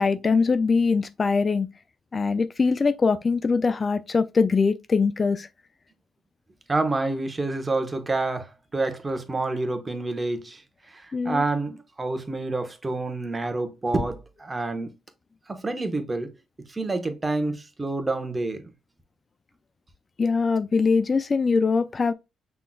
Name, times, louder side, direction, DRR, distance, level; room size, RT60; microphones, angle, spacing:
voice 1, 0.0-1.7 2.1-5.5 11.1-11.4 20.2-22.1, left 4 dB, 40° left, 0.3 m, -22 dB
voice 2, 6.7-10.6 10.9-14.9 15.5-16.3 16.7-18.6, right 2 dB, 25° right, 1.0 m, -28 dB
5.6 x 3.8 x 2.2 m
cardioid pair, 75°, 0 cm